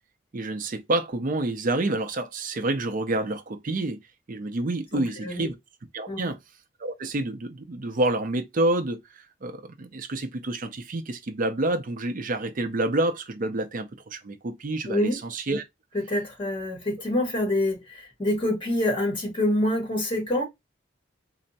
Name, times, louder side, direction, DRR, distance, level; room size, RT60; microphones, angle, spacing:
voice 1, 0.3-4.0 4.3-5.5 5.9-6.4 6.8-15.6, right 2 dB, 45° right, 0.5 m, -28 dB
voice 2, 4.9-5.5 6.1-6.3 14.9-15.2 15.9-20.4, left 1 dB, 30° left, 1.7 m, -26 dB
3.3 x 2.0 x 4.0 m
head